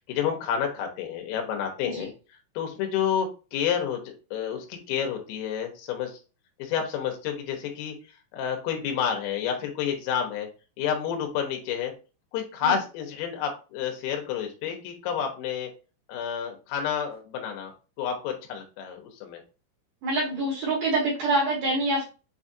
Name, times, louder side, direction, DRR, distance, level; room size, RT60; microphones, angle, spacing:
voice 1, 0.0-2.1 2.6-6.2 6.6-7.9 8.3-10.5 10.8-11.9 12.3-15.7 16.1-17.7 18.0-19.4, left 8 dB, 85° left, 3 dB, 3.7 m, -29 dB
voice 2, 20.0-22.0, right 2 dB, 70° right, -5 dB, 2.1 m, -26 dB
8.0 x 2.7 x 2.5 m, 0.33 s
omnidirectional pair, 6.0 m